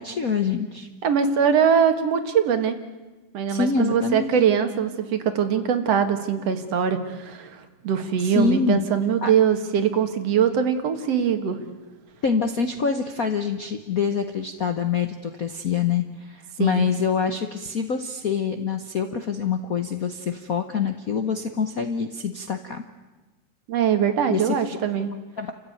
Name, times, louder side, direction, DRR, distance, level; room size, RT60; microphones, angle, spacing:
voice 1, 0.0-0.9 3.5-4.3 8.2-8.9 9.2-9.3 12.2-22.8 24.3-24.6 25.4-25.5, left 6 dB, 80° left, 7 dB, 0.7 m, -25 dB
voice 2, 1.0-2.8 3.3-11.6 16.6-16.9 23.7-25.1, right 7 dB, 60° right, 8 dB, 2.5 m, -22 dB
29.5 x 15.0 x 9.3 m, 1.2 s
omnidirectional pair, 3.3 m